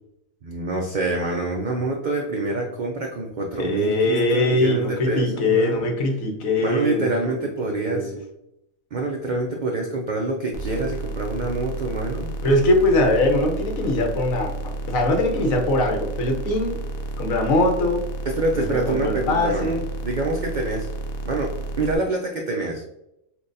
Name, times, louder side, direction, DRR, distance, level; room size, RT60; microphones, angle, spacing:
voice 1, 0.4-5.9 6.6-8.1 8.9-12.3 18.3-20.9 21.3-22.8, right 2 dB, 90° right, 1 dB, 0.4 m, -26 dB
voice 2, 3.6-7.1 7.7-8.2 12.4-16.8 17.2-18.0 18.5-19.8, left 1 dB, 75° left, 2 dB, 1.2 m, -22 dB
sound 1, 10.5-22.0, right 2 dB, 60° left, 0.6 m, -31 dB
5.9 x 2.3 x 2.5 m, 0.82 s
omnidirectional pair, 1.4 m